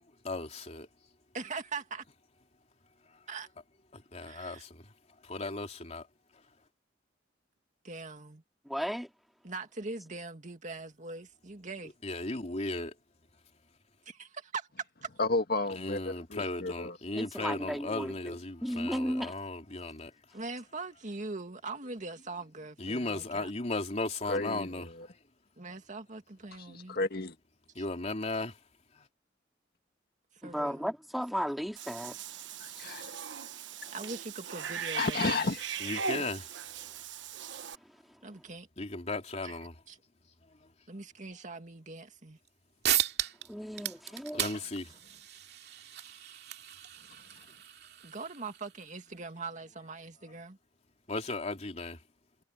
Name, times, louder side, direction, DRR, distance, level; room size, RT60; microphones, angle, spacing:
voice 1, 0.2-0.9 3.9-4.8 5.2-6.1 12.0-12.9 15.7-20.1 22.8-25.1 27.7-28.6 29.0-29.1 35.8-36.5 38.8-39.8 40.6-40.7 44.1-44.9 51.1-52.0, left 2 dB, 35° left, 3.2 m, -36 dB
voice 2, 1.3-2.0 3.3-3.5 4.3-4.7 7.8-8.4 9.4-11.9 14.1-14.7 15.0-15.1 20.3-23.5 25.6-27.0 27.8-27.9 30.4-30.9 33.9-35.5 38.2-38.7 39.4-39.6 39.9-40.0 40.9-42.4 48.0-50.6, right 3 dB, 45° right, 2.3 m, -42 dB
voice 3, 8.7-9.1 17.2-18.3 18.6-19.3 30.4-32.2 43.5-44.4, equal, ahead, 2.8 m, -34 dB
voice 4, 15.2-17.0 24.3-25.1 26.6-27.3 32.6-33.1 34.9-35.6, left 3 dB, 55° left, 1.8 m, -32 dB
Cat / Bathtub (filling or washing), 31.8-37.8, right 7 dB, 80° right, 1.1 m, -39 dB
sound 1, 42.5-42.6 42.8-43.5 43.7-48.9, right 12 dB, 65° right, 2.5 m, -35 dB
head